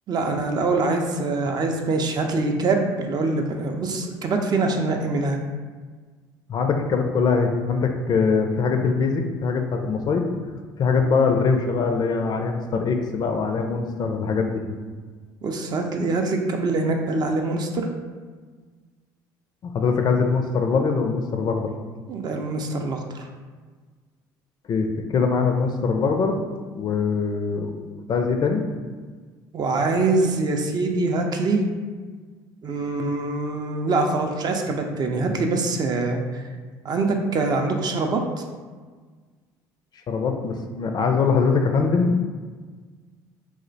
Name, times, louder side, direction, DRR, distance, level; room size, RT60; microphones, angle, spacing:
voice 1, 0.1-5.4 15.4-17.9 22.1-23.3 29.5-31.6 32.6-36.4 36.8-38.2, right 3 dB, 45° right, 3 dB, 0.4 m, -24 dB
voice 2, 6.5-10.2 10.8-14.6 19.6-21.7 24.7-26.4 26.7-27.7 28.1-28.6 40.1-42.2, left 5 dB, 45° left, 5 dB, 0.4 m, -22 dB
2.4 x 2.1 x 3.8 m, 1.5 s
hypercardioid pair, 70°, 10 cm